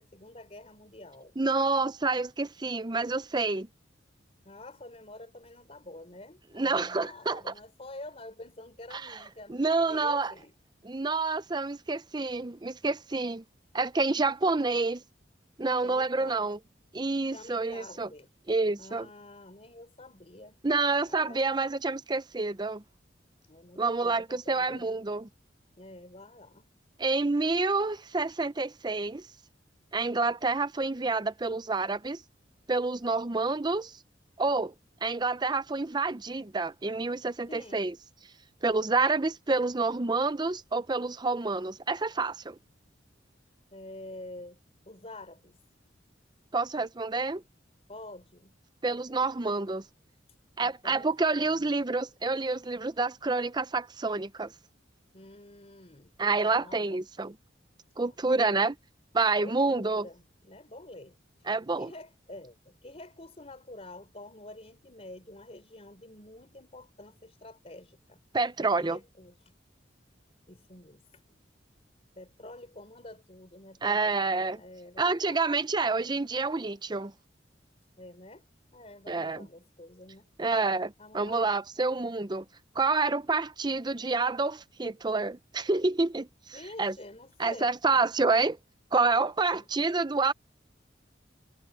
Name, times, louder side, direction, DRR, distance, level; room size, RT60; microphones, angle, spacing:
voice 1, 0.0-1.4 4.4-10.5 15.8-16.5 17.3-18.3 18.8-20.6 21.0-21.5 23.4-24.8 25.8-26.7 37.5-37.8 43.7-44.6 44.9-45.6 47.9-48.5 50.6-51.6 55.1-56.1 56.4-57.0 58.1-58.7 59.4-61.5 61.8-68.2 68.8-69.5 70.5-71.4 72.2-75.5 78.0-78.5 78.7-80.3 81.0-81.5 86.5-88.1 89.5-89.7, left 2 dB, 35° left, 4.1 m, -48 dB
voice 2, 1.4-3.7 6.5-7.5 8.9-9.2 9.5-10.3 10.8-13.4 13.7-15.0 15.6-16.6 16.9-18.1 18.5-19.1 20.6-22.8 23.8-25.3 27.0-29.3 29.9-32.2 32.7-34.0 34.4-34.7 35.0-37.9 38.6-42.6 46.5-47.4 48.8-49.8 50.6-54.5 56.2-57.4 58.0-58.7 59.1-60.1 61.5-61.9 68.3-69.0 73.8-74.6 75.0-77.1 79.1-79.5 80.4-82.4 82.8-87.0 87.4-88.6 88.9-90.3, right 3 dB, 25° right, 0.6 m, -28 dB
head